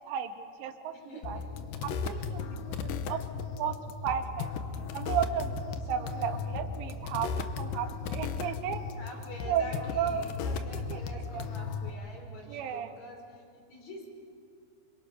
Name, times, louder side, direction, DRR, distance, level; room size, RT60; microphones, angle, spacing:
voice 1, 0.0-0.9 1.3-1.4 1.8-3.2 3.6-3.8 4.0-4.5 4.9-8.8 9.5-10.3 10.7-11.4 12.5-12.9, right 8 dB, 85° right, 7 dB, 3.5 m, -34 dB
voice 2, 0.9-1.5 1.9-2.6 5.7-6.6 6.9-7.0 9.0-14.1, left 2 dB, 40° left, 1 dB, 5.5 m, -47 dB
sound 1, 1.2-11.9, left 5 dB, 70° left, 2.3 m, -36 dB
27.5 x 26.0 x 5.8 m, 2.3 s
omnidirectional pair, 5.0 m